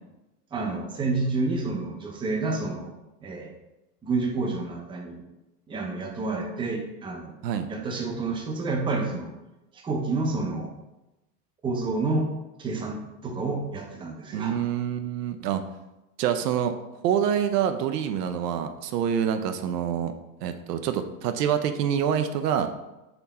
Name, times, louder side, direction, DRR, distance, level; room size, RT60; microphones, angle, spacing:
voice 1, 0.5-2.9 3.2-3.5 4.0-5.2 5.7-7.4 7.7-9.3 9.8-10.7 11.6-12.3 12.6-14.5, right 3 dB, 10° right, 0 dB, 0.5 m, -29 dB
voice 2, 14.3-15.6 16.2-16.8 17.0-20.1 20.4-22.7, right 9 dB, 80° right, 8 dB, 0.6 m, -26 dB
4.3 x 2.8 x 4.1 m, 0.98 s
hypercardioid pair, 115°, 48 cm